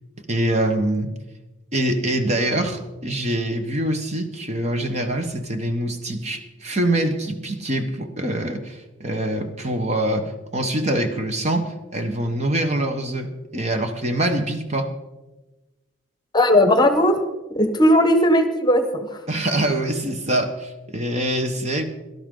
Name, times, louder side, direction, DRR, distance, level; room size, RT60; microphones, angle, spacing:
voice 1, 0.3-1.1 1.7-14.9 19.3-21.8, right 1 dB, 35° right, 6 dB, 1.0 m, -24 dB
voice 2, 16.3-17.2 17.5-19.2, left 1 dB, 20° left, 7 dB, 1.0 m, -17 dB
17.5 x 12.5 x 3.8 m, 1.1 s
head